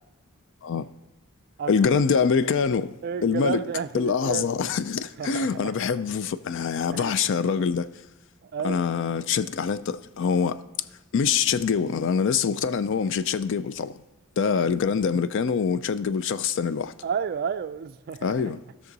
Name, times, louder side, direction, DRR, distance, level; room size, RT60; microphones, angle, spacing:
voice 1, 1.7-2.9 3.2-3.6 3.9-7.9 8.6-10.6 11.1-14.0 14.4-16.9 18.2-18.6, left 6 dB, 60° left, 0.4 m, -24 dB
voice 2, 3.0-4.5 5.2-5.7 6.9-7.2 8.4-8.8 17.0-18.4, right 6 dB, 45° right, 0.3 m, -31 dB
16.0 x 6.3 x 4.0 m
head